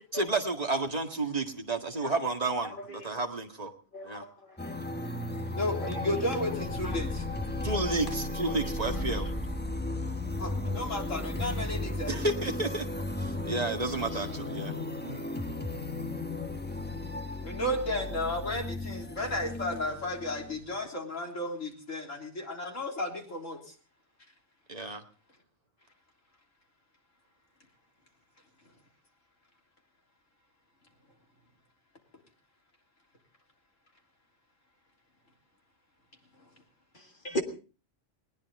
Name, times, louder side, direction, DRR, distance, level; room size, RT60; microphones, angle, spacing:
voice 1, 0.1-3.7 4.0-4.2 7.6-9.3 12.1-12.9 13.2-14.7 15.0-15.2 24.7-25.0, right 2 dB, 30° right, 4 dB, 2.0 m, -31 dB
voice 2, 3.9-4.6 5.8-6.0 7.9-8.0 8.4-8.6 36.9-37.4, equal, 40° left, 4 dB, 2.1 m, -37 dB
sound 1, 4.6-20.9, left 2 dB, 10° left, 1.1 m, -35 dB
voice 3, 5.5-7.2 10.4-12.3 14.1-14.2 17.4-23.7, left 1 dB, 90° left, 2 dB, 3.9 m, -33 dB
20.5 x 18.5 x 3.6 m, 0.36 s
omnidirectional pair, 1.3 m